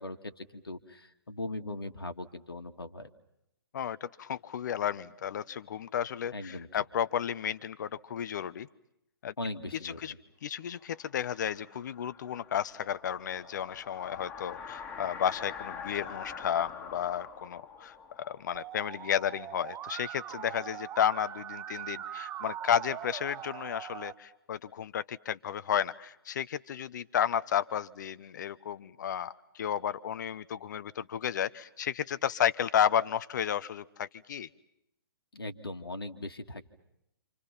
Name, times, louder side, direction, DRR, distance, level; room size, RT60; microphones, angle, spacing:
voice 1, 0.0-3.1 6.3-6.7 9.4-10.1 35.3-36.6, left 2 dB, 80° left, 6 dB, 1.9 m, -39 dB
voice 2, 3.7-8.7 9.2-9.3 9.8-10.1 10.4-34.5, left 9 dB, 50° left, 16 dB, 1.0 m, -32 dB
sound 1, 11.0-19.7, left 6 dB, 15° left, 4.6 m, -45 dB
Musical instrument, 18.5-24.1, right 11 dB, 20° right, 1.0 m, -41 dB
29.5 x 27.5 x 5.9 m, 0.82 s
figure-of-eight pair, 125°, 12 cm